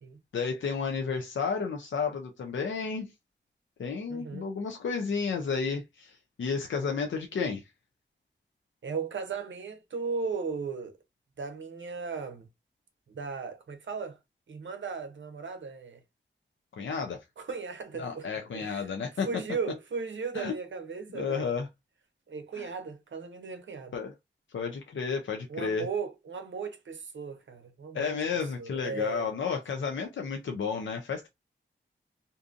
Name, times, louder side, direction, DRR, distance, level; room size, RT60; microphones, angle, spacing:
voice 1, 0.3-3.1 3.8-7.7 16.8-17.2 18.0-19.3 20.3-20.5 21.1-21.7 22.5-22.7 23.9-24.1 24.5-25.9 27.9-31.3, left 5 dB, 75° left, 0.5 m, -32 dB
voice 2, 4.1-4.5 8.8-10.9 11.4-12.5 13.1-14.2 14.5-16.0 17.4-18.3 18.5-18.9 19.1-21.5 22.3-24.0 25.5-28.2 28.6-29.3, right 5 dB, 70° right, 0.6 m, -36 dB
2.6 x 2.4 x 2.4 m
wide cardioid pair, 60°, 20 cm